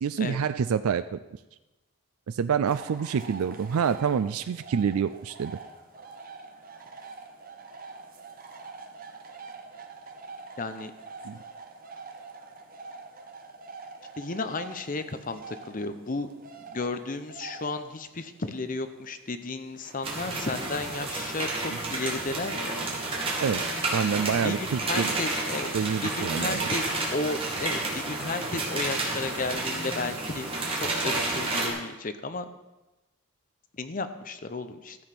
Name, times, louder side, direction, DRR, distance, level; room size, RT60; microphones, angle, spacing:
voice 1, 0.0-1.2 2.3-5.5 11.2-11.4 23.4-23.6 23.9-25.1 25.7-26.7, right 7 dB, 80° right, 12 dB, 0.4 m, -27 dB
sound 1, 2.7-21.2, right 4 dB, 40° right, 1.1 m, -45 dB
voice 2, 10.6-10.9 14.2-16.3 16.6-22.7 24.4-25.7 26.0-30.5 30.7-32.5 33.7-35.0, left 3 dB, 40° left, 10 dB, 0.7 m, -33 dB
sound 2, 20.0-31.7, right 2 dB, 25° right, 2.3 m, -30 dB
13.5 x 7.1 x 5.9 m, 1.0 s
head